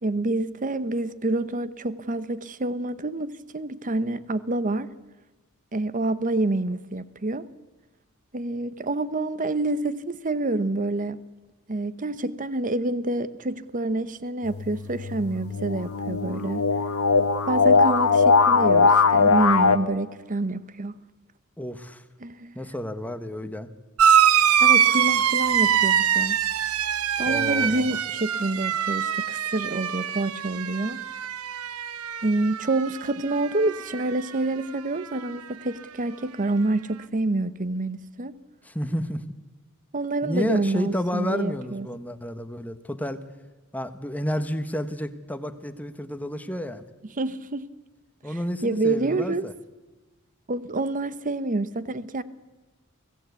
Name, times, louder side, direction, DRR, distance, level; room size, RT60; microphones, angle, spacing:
voice 1, 0.0-4.9 5.7-7.5 8.3-11.2 11.7-16.6 17.5-20.9 22.2-22.6 24.6-26.4 27.2-31.0 32.2-38.3 39.9-41.9 47.2-47.7 48.3-49.5 50.5-52.2, right 2 dB, 40° right, 0.9 m, -27 dB
sound 1, 14.4-19.8, left 4 dB, 85° left, 1.3 m, -20 dB
voice 2, 21.6-22.0 22.5-23.7 27.3-28.0 38.6-39.3 40.2-43.2 43.7-46.9 48.2-49.5, equal, 5° left, 1.2 m, -31 dB
sound 2, 24.0-33.0 33.3-34.0 35.1-35.2, right 8 dB, 90° right, 0.9 m, -23 dB
24.0 x 17.0 x 8.3 m
head